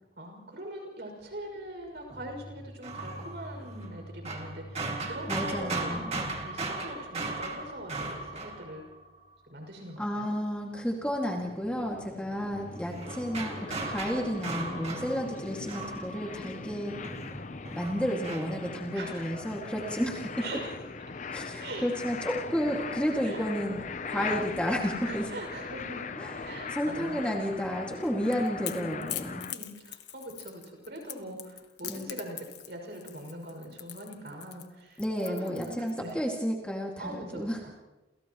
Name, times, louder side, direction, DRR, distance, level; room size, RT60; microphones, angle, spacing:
voice 1, 0.2-6.0 6.4-8.8 9.4-10.3 18.9-19.5 20.4-20.7 21.6-21.9 23.2-23.7 24.1-24.4 25.0-26.1 26.4-27.6 28.7-36.2 37.0-37.7, right 1 dB, 55° right, 2 dB, 6.3 m, -42 dB
sound 1, 2.1-9.3 12.5-16.7 17.0-18.8, right 2 dB, 35° right, 2.4 m, -38 dB
voice 2, 5.3-6.3 10.0-17.0 17.7-20.2 21.3-23.8 24.1-25.3 26.2-26.4 26.7-29.5 31.9-32.1 35.0-37.6, equal, 5° left, -1 dB, 2.2 m, -32 dB
sound 2, 10.6-29.5, left 4 dB, 40° left, 0.6 m, -40 dB
Crackle / Crack, 27.9-36.1, left 12 dB, 60° left, 1.4 m, -42 dB
29.5 x 28.5 x 3.1 m, 1.1 s
head